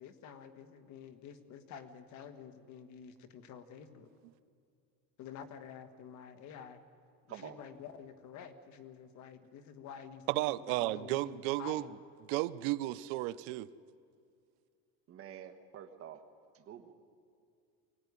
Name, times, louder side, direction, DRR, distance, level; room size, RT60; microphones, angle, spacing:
voice 1, 0.0-4.1 5.2-6.8 7.3-12.0, left 7 dB, 50° left, 8 dB, 1.8 m, -49 dB
voice 2, 10.3-11.8 12.3-13.7, right 18 dB, 90° right, 17 dB, 0.7 m, -33 dB
voice 3, 15.1-16.2 16.5-16.9, right 9 dB, 40° right, 7 dB, 1.6 m, -48 dB
23.5 x 18.0 x 9.8 m, 2.3 s
cardioid pair, 155°, 36 cm